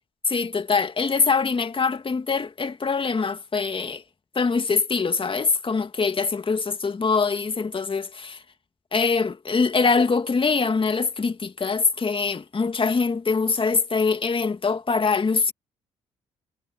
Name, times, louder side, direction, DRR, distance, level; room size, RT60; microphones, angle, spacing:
voice 1, 0.3-4.0 4.4-8.4 8.9-15.5, left 4 dB, 35° left, 2.3 m, -23 dB
hypercardioid pair, 50°, 15 cm